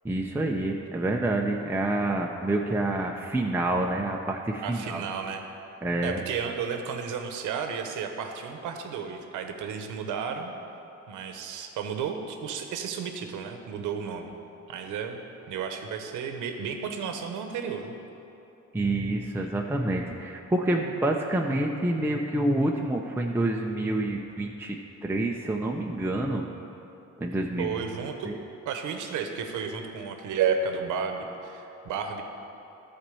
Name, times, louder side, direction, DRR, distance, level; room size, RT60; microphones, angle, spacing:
voice 1, 0.0-5.0 5.8-6.2 18.7-24.8 25.0-26.4 27.2-27.7 28.3-28.4, right 1 dB, 5° right, 0 dB, 0.6 m, -27 dB
voice 2, 4.6-5.4 6.0-10.5 11.1-14.3 14.7-15.2 15.5-17.9 27.6-28.3 28.6-32.2, right 6 dB, 85° right, 5 dB, 1.0 m, -32 dB
12.5 x 4.4 x 6.9 m, 3.0 s
cardioid pair, 90°, 30 cm